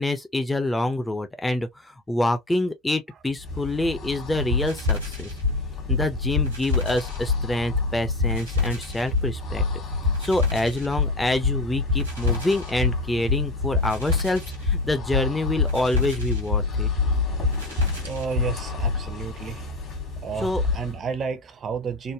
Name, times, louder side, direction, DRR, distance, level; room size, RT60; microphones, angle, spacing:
voice 1, 0.0-5.3 5.9-9.6 10.2-16.9 20.4-20.6, left 2 dB, 10° left, 0.5 m, -26 dB
sound 1, 3.3-21.1, left 3 dB, 45° left, 1.4 m, -33 dB
sound 2, 4.4-19.0, left 4 dB, 85° right, 1.1 m, -26 dB
voice 2, 18.0-19.7 20.2-22.1, right 6 dB, 40° right, 0.6 m, -31 dB
3.2 x 2.1 x 2.3 m
figure-of-eight pair, 55°, 0 cm